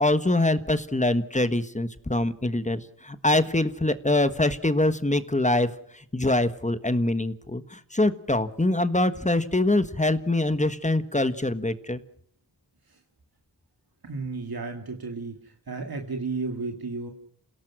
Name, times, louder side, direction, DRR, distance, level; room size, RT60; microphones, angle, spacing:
voice 1, 0.0-12.0, left 2 dB, 20° left, 11 dB, 1.4 m, -24 dB
voice 2, 14.0-15.4 15.7-17.1, right 3 dB, 70° right, 3 dB, 2.3 m, -32 dB
28.5 x 17.5 x 6.2 m, 0.65 s
wide cardioid pair, 65°, 38 cm